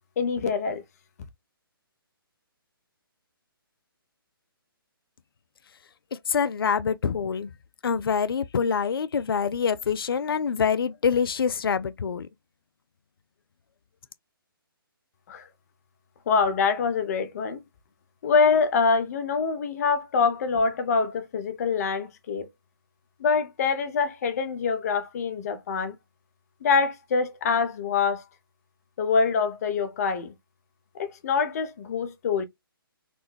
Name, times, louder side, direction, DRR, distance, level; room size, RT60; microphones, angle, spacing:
voice 1, 0.2-0.8 15.3-15.5 16.3-17.6 18.2-22.5 23.2-26.0 26.6-28.2 29.0-30.3 30.9-32.4, left 5 dB, 45° left, 0.7 m, -25 dB
voice 2, 6.1-7.5 7.8-12.3, left 6 dB, 70° left, 0.4 m, -25 dB
4.1 x 2.2 x 3.1 m
figure-of-eight pair, 140°, 12 cm